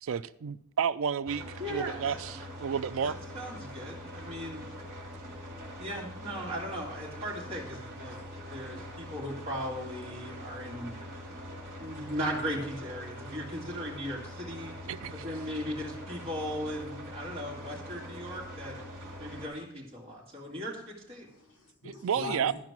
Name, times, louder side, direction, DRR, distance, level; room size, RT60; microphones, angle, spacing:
voice 1, 0.0-3.2 14.9-15.3 21.8-22.5, right 7 dB, 65° right, 0.4 m, -31 dB
sound 1, 1.3-19.5, equal, 45° right, 2.4 m, -43 dB
voice 2, 1.6-2.2 3.0-4.7 5.8-8.2 8.5-10.9 11.8-14.7 15.1-18.8 19.2-21.3, equal, 30° right, 2.5 m, -37 dB
voice 3, 10.8-11.5 18.9-19.0 21.2-22.5, left 1 dB, 70° left, 4.1 m, -42 dB
12.0 x 4.9 x 6.0 m
head